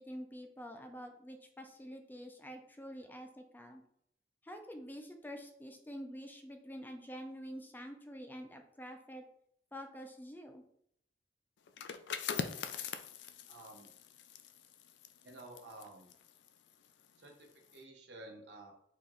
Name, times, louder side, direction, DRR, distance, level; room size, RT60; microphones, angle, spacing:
voice 1, 0.0-3.8 4.4-9.2 9.7-10.6, equal, 10° left, 5 dB, 0.4 m, -47 dB
sound 1, 11.7-17.2 17.5-17.8, left 7 dB, 80° left, 0.4 m, -43 dB
voice 2, 13.5-13.9 15.2-16.1 17.2-18.7, right 2 dB, 80° right, 1 dB, 1.0 m, -52 dB
4.2 x 3.0 x 3.7 m, 0.71 s
head